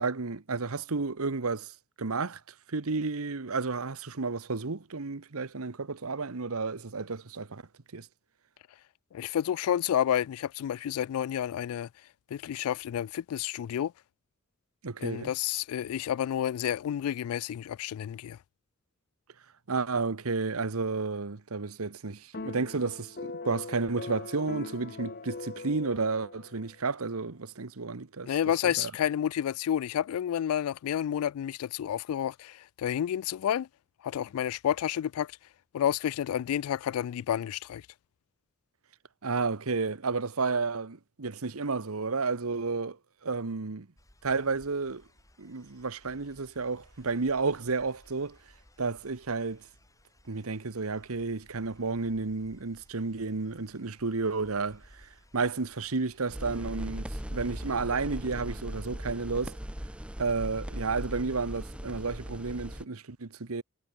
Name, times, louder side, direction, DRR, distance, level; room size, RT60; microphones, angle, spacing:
voice 1, 0.0-1.7 2.0-2.4 2.7-7.6 7.9-8.1 14.8-15.3 19.7-28.3 28.6-28.9 39.2-43.0 43.2-43.9 44.2-45.0 45.4-48.4 48.8-49.6 50.3-59.6 60.2-63.6, right 4 dB, 75° right, 1.1 m, -32 dB
voice 2, 9.1-11.9 12.3-13.9 15.0-18.4 28.2-33.7 34.0-35.3 35.7-37.8, left 10 dB, 75° left, 0.3 m, -30 dB
sound 1, 22.3-26.8, left 3 dB, 45° left, 1.5 m, -41 dB
sound 2, 44.0-56.3, left 1 dB, 15° left, 3.6 m, -60 dB
sound 3, 56.3-62.8, equal, 5° right, 0.8 m, -38 dB
head